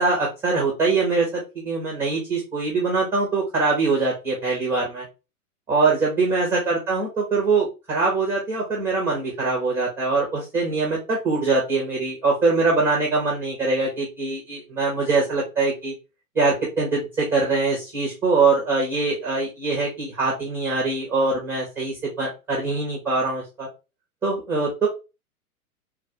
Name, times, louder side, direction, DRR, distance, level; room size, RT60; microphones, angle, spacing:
voice 1, 0.0-5.1 5.7-15.9 16.3-23.7 24.2-24.9, right 3 dB, 5° right, -2 dB, 0.5 m, -23 dB
3.2 x 2.4 x 3.6 m, 0.28 s
figure-of-eight pair, 110°, 44 cm